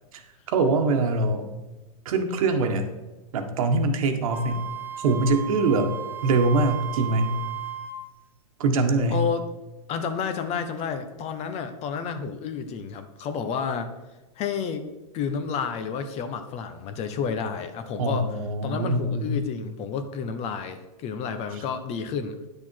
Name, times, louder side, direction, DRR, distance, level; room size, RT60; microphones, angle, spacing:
voice 1, 0.5-1.5 2.0-2.9 3.3-4.6 5.0-5.9 6.2-7.4 8.6-9.2 18.0-19.3, right 3 dB, 65° right, 6 dB, 1.5 m, -23 dB
Wind instrument woodwind instrument, 4.3-8.0, right 9 dB, 10° right, 0.7 m, -35 dB
voice 2, 9.1-9.4 9.9-13.9 14.4-14.8 15.1-18.3 18.6-22.3, left 6 dB, 35° left, 8 dB, 1.1 m, -30 dB
10.0 x 6.9 x 4.6 m, 1.1 s
hypercardioid pair, 130°, 19 cm